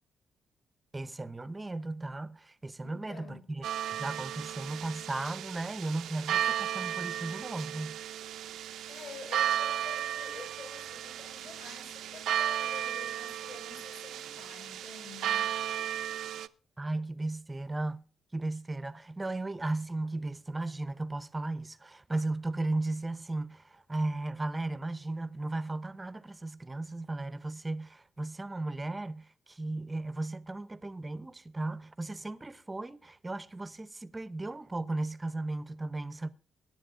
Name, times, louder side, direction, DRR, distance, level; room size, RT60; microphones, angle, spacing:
voice 1, 0.9-3.7 3.9-8.0 16.8-18.0 18.3-36.3, right 2 dB, 15° right, 0.6 m, -36 dB
voice 2, 2.8-3.6 8.3-15.6, left 5 dB, 65° left, 6.1 m, -48 dB
sound 1, 3.6-16.5, right 11 dB, 90° right, 0.5 m, -34 dB
23.0 x 10.5 x 2.5 m
cardioid pair, 160°, 0 cm